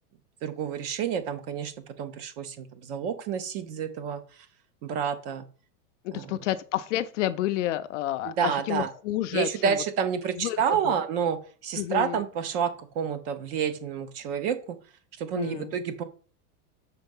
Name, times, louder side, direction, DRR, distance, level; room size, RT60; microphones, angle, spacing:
voice 1, 0.4-4.2 4.8-5.5 6.1-6.4 8.2-8.9 9.3-14.8 15.2-16.0, right 7 dB, 40° right, 0.8 m, -29 dB
voice 2, 6.0-9.8 10.4-10.9 11.8-12.2 15.3-15.7, left 13 dB, 50° left, 0.5 m, -30 dB
6.5 x 4.5 x 5.4 m
supercardioid pair, 170°, 47 cm